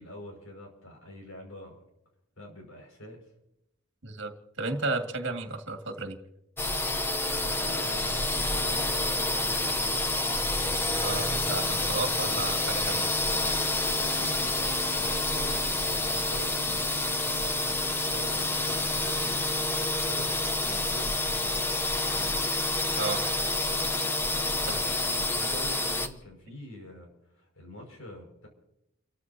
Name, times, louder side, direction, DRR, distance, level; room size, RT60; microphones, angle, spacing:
voice 1, 0.0-1.8 2.4-3.2 7.4-10.1 14.0-19.4 19.8-21.8 22.0-22.5 24.6-27.1 27.3-28.5, left 1 dB, 75° left, 2 dB, 6.0 m, -45 dB
voice 2, 4.6-6.2 11.0-13.1 23.0-23.2 24.7-24.8, right 3 dB, 55° right, 5 dB, 2.1 m, -33 dB
sound 1, 6.6-26.1, left 2 dB, 10° left, 0.8 m, -28 dB
30.0 x 14.5 x 2.9 m, 0.84 s
head